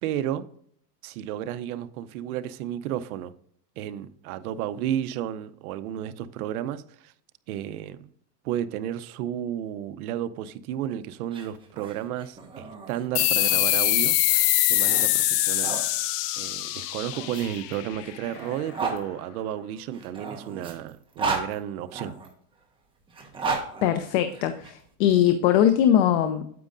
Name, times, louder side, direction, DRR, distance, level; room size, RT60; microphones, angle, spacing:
voice 1, 0.0-0.4 1.0-3.3 3.8-7.1 7.5-8.1 8.4-14.2 14.7-15.7 16.4-22.2, right 11 dB, 60° right, 0.7 m, -32 dB
sound 1, 11.2-15.8 16.8-19.0 19.9-22.3 23.1-24.7, right 4 dB, 10° right, 1.4 m, -34 dB
sound 2, 13.2-18.3, left 16 dB, 70° left, 0.8 m, -24 dB
voice 2, 23.8-26.5, left 10 dB, 40° left, 0.7 m, -21 dB
9.4 x 8.2 x 2.5 m
supercardioid pair, 155°, 49 cm